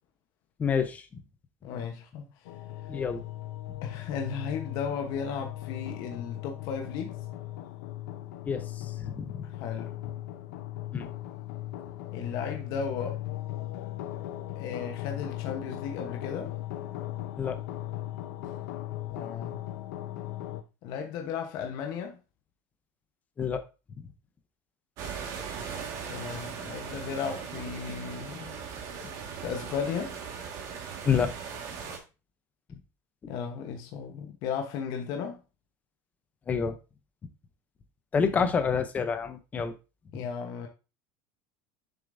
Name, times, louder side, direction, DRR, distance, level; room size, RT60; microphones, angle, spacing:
voice 1, 0.6-1.1 2.9-3.2 8.5-9.4 10.9-11.1 17.4-17.6 23.4-23.6 24.0-24.1 31.0-31.3 36.5-36.8 38.1-39.7, left 6 dB, 15° left, 0.7 m, -28 dB
voice 2, 1.6-2.3 3.8-7.2 9.4-9.9 12.1-13.1 14.6-16.5 19.1-19.7 20.8-22.2 26.1-28.6 29.4-30.1 33.3-35.4 38.2-38.5 40.1-40.7, left 6 dB, 45° left, 1.0 m, -35 dB
sound 1, 2.4-20.6, left 14 dB, 75° left, 0.8 m, -38 dB
sound 2, 25.0-32.0, right 6 dB, 40° right, 1.7 m, -39 dB
7.1 x 6.6 x 2.6 m
cardioid pair, 170°, 9 cm